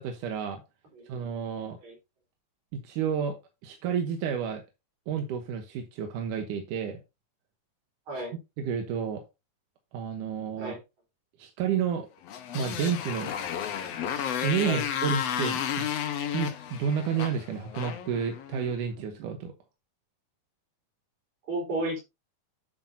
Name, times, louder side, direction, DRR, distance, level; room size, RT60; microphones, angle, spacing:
voice 1, 0.0-0.6 1.1-1.8 2.8-3.4 3.6-4.6 5.1-7.0 8.6-9.2 9.9-10.7 11.4-12.1 12.5-13.3 14.4-15.9 16.3-19.5, right 7 dB, 90° right, 5 dB, 2.7 m, -30 dB
Motorcycle, 12.2-18.8, left 9 dB, 60° left, 2.0 m, -32 dB
voice 2, 21.5-22.0, right 1 dB, 65° right, 0 dB, 5.5 m, -32 dB
10.5 x 7.7 x 2.8 m, 0.24 s
omnidirectional pair, 3.6 m